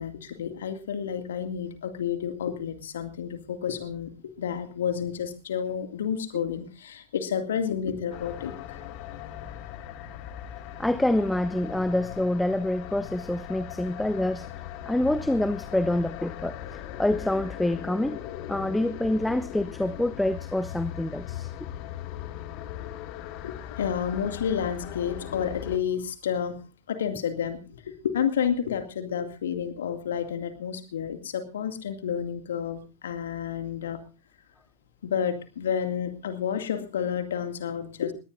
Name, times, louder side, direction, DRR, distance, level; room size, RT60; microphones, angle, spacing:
voice 1, 0.0-4.1 4.4-8.8 23.4-26.6 26.9-34.0 35.0-38.1, left 8 dB, 65° left, 2.2 m, -30 dB
sound 1, 8.1-25.8, left 11 dB, 40° left, 1.9 m, -39 dB
voice 2, 10.8-14.5 14.9-16.6 17.0-18.2 18.5-21.5, left 1 dB, 5° left, 0.8 m, -26 dB
21.5 x 18.5 x 2.6 m
figure-of-eight pair, 90°, 0 cm